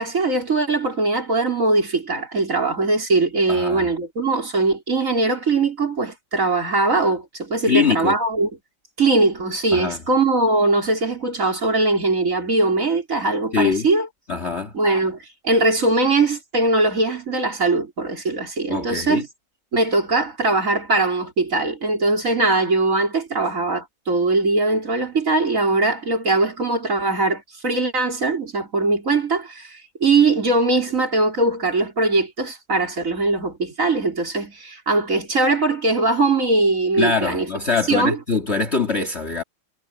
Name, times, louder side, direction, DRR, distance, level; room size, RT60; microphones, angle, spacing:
voice 1, 0.0-8.5 9.0-14.1 14.7-19.2 19.7-37.5 37.9-38.2, right 3 dB, 40° right, 3.9 m, -21 dB
voice 2, 3.5-3.9 7.7-8.1 9.7-10.0 13.5-13.9 14.3-14.7 18.7-19.2 37.0-39.4, left 4 dB, 35° left, 2.1 m, -23 dB
omnidirectional pair, 2.2 m